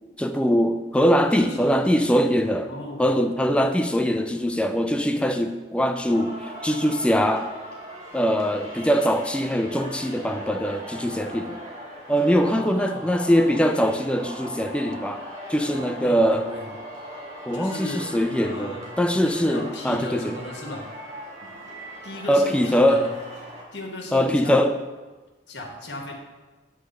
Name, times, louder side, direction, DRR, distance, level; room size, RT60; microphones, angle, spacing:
voice 1, 0.2-2.7 3.0-7.5 8.1-11.6 12.1-15.2 15.5-16.5 17.5-20.3 22.3-23.1 24.1-24.8, equal, 5° left, 6 dB, 0.4 m, -22 dB
voice 2, 1.3-1.8 2.7-3.1 12.6-13.1 16.0-16.7 17.5-20.9 21.4-21.5 22.0-23.2 23.7-24.6 25.5-26.1, left 1 dB, 75° left, 1 dB, 1.5 m, -36 dB
Singing, 6.1-23.6, equal, 35° right, 2.3 m, -39 dB
9.5 x 3.3 x 6.5 m, 1.2 s
head